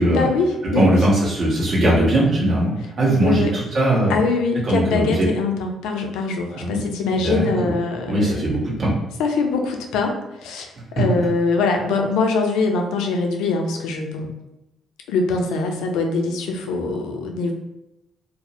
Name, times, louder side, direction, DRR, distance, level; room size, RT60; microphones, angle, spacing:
voice 1, 0.0-1.0 3.1-3.5 4.1-8.4 9.2-14.3 15.1-17.5, left 4 dB, 65° left, 3 dB, 0.3 m, -23 dB
voice 2, 0.7-4.2 4.7-5.3 6.5-6.8 7.2-7.7 8.1-8.9, right 1 dB, 50° right, -6 dB, 1.0 m, -19 dB
2.4 x 2.0 x 3.0 m, 0.89 s
figure-of-eight pair, 40°, 0 cm